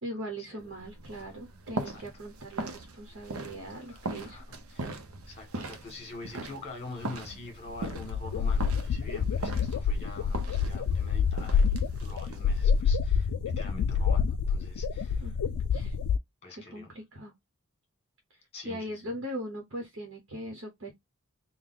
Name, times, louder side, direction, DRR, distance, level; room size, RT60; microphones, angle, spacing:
voice 1, 0.0-4.4 15.2-15.3 15.7-16.0 16.7-17.3 18.6-20.9, equal, 55° right, 1.0 m, -40 dB
sound 1, 0.6-12.8, right 2 dB, 75° right, 0.6 m, -41 dB
voice 2, 3.7-5.0 5.3-11.6 12.0-15.3 16.4-16.9 18.5-19.2, left 2 dB, 25° left, 1.6 m, -45 dB
sound 2, 7.3-7.4 7.7-16.2, left 6 dB, 90° left, 0.3 m, -27 dB
3.5 x 2.1 x 3.8 m
head